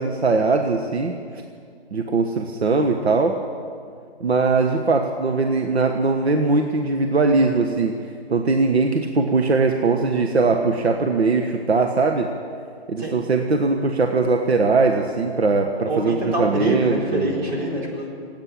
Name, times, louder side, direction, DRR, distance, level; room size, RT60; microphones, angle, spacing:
voice 1, 0.0-1.4 1.9-3.4 4.2-7.9 8.3-12.3 12.9-17.3, right 3 dB, 75° right, 4 dB, 1.2 m, -20 dB
voice 2, 15.9-18.1, right 1 dB, 45° right, -3 dB, 3.9 m, -25 dB
16.5 x 8.9 x 9.9 m, 2.2 s
figure-of-eight pair, 145°, 32 cm